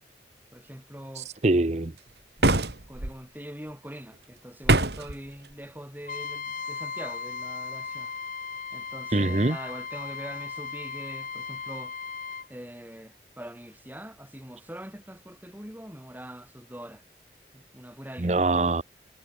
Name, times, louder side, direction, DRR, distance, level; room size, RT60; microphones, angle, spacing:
voice 1, 0.5-1.3 2.4-8.1 8.7-11.9 12.5-17.0 17.5-18.4, equal, 10° right, 5.9 m, -43 dB
voice 2, 1.1-1.9 9.1-9.6 18.2-18.8, right 2 dB, 40° right, 0.8 m, -24 dB
sound 1, 2.4-3.1 4.6-5.2, right 2 dB, 70° right, 2.5 m, -23 dB
Trumpet, 6.1-12.5, left 5 dB, 50° left, 2.0 m, -37 dB
head